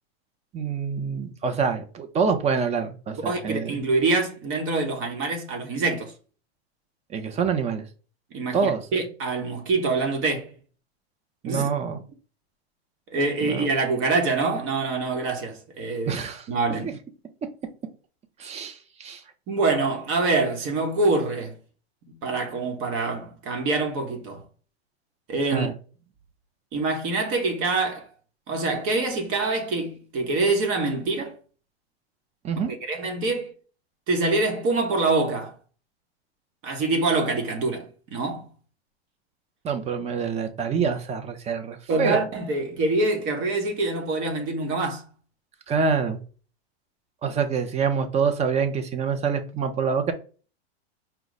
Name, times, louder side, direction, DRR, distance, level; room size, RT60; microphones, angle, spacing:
voice 1, 0.5-3.8 7.1-7.8 8.5-9.0 11.4-12.0 13.4-13.7 16.1-16.5 16.8-16.9 18.4-19.2 25.5-25.7 32.4-32.7 39.6-42.2 45.7-46.2 47.2-50.1, right 6 dB, 20° right, 0.6 m, -26 dB
voice 2, 3.2-6.1 8.3-10.5 11.4-11.7 13.1-16.2 16.5-16.8 19.5-21.6 22.2-24.4 25.3-25.7 26.7-28.1 28.5-31.3 32.6-33.5 34.1-35.5 36.6-38.5 41.9-45.1, right 3 dB, 40° right, 1.1 m, -25 dB
4.9 x 2.3 x 4.0 m
hypercardioid pair, 125°, 32 cm